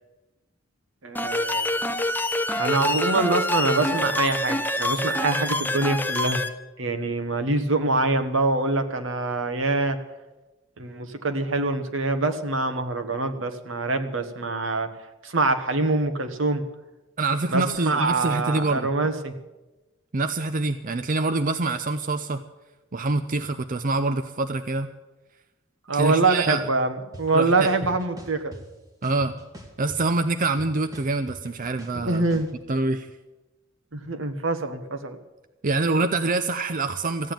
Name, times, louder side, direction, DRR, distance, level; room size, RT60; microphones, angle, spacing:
voice 1, 1.0-1.8 2.6-6.4 6.8-10.0 10.8-14.9 15.2-16.6 17.5-19.3 25.9-28.5 31.9-32.5 33.9-35.2, right 3 dB, 75° right, 8 dB, 1.4 m, -25 dB
sound 1, 1.2-6.5, left 1 dB, 10° left, 0.7 m, -26 dB
voice 2, 17.2-18.9 20.1-22.4 22.9-24.9 25.9-26.6 27.3-27.7 29.0-29.3 29.8-32.2 32.7-33.1 35.6-37.3, right 3 dB, 45° right, 9 dB, 0.6 m, -25 dB
sound 2, 27.1-27.2 27.6-28.6 29.0-30.1 30.4-32.5, right 1 dB, 20° right, 2.4 m, -42 dB
15.0 x 9.2 x 9.1 m, 1.1 s
head